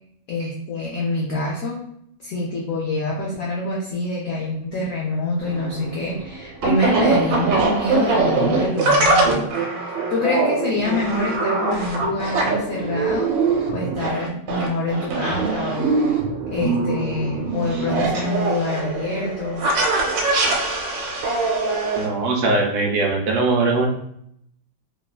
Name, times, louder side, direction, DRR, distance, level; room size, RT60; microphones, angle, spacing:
voice 1, 0.3-1.8 2.2-13.3 13.7-16.0 16.5-19.7, left 2 dB, 80° left, -3 dB, 0.7 m, -26 dB
sound 1, 5.4-22.1, right 3 dB, 90° right, 1.3 m, -22 dB
voice 2, 21.9-23.9, right 3 dB, 70° right, 1 dB, 1.0 m, -21 dB
3.0 x 2.2 x 2.3 m, 0.71 s
omnidirectional pair, 2.0 m